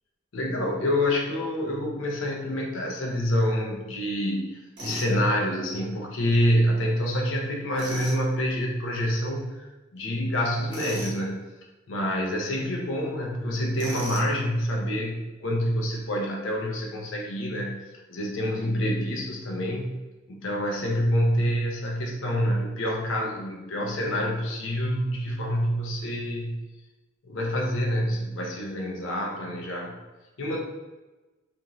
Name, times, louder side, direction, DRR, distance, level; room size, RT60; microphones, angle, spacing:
voice 1, 0.3-9.7 9.9-11.5 11.9-17.8 18.1-20.0 20.3-26.5 27.2-29.9 30.4-30.6, equal, 80° left, 0 dB, 0.6 m, -27 dB
Tools, 4.8-5.1 7.7-8.2 10.7-11.2 13.8-14.4, right 2 dB, 60° right, 0.8 m, -36 dB
2.6 x 2.4 x 2.9 m, 1.1 s
head